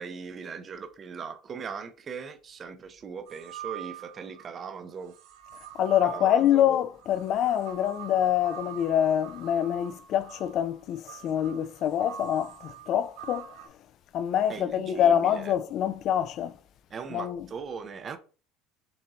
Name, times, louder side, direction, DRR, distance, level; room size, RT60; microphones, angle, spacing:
voice 1, 0.0-5.1 6.0-6.6 14.5-15.5 16.9-18.2, right 6 dB, 25° right, 0.4 m, -39 dB
sound 1, 3.3-4.5 5.1-13.7, right 10 dB, 70° right, 0.9 m, -45 dB
voice 2, 5.8-13.5 14.1-16.5 17.1-17.4, left 10 dB, 40° left, 0.3 m, -25 dB
6.7 x 2.6 x 2.8 m
cardioid pair, 160°, 0 cm